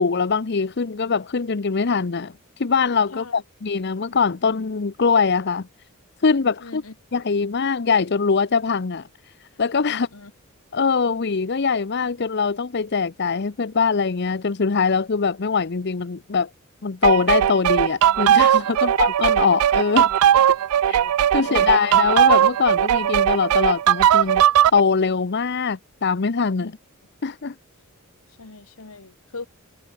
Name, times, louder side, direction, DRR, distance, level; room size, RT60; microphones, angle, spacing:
voice 1, 0.0-5.7 6.2-6.8 7.1-9.0 9.6-10.1 10.7-16.5 16.8-20.1 20.9-21.0 21.3-24.4 24.7-26.7 27.2-27.5, left 5 dB, 50° left, 0.7 m, -22 dB
voice 2, 3.1-3.4 6.6-6.9 9.9-10.3 18.7-19.1 20.7-22.0 26.6-26.7 28.4-29.5, left 3 dB, 75° left, 1.5 m, -40 dB
sound 1, 17.0-24.8, right 10 dB, 85° right, 0.3 m, -18 dB
head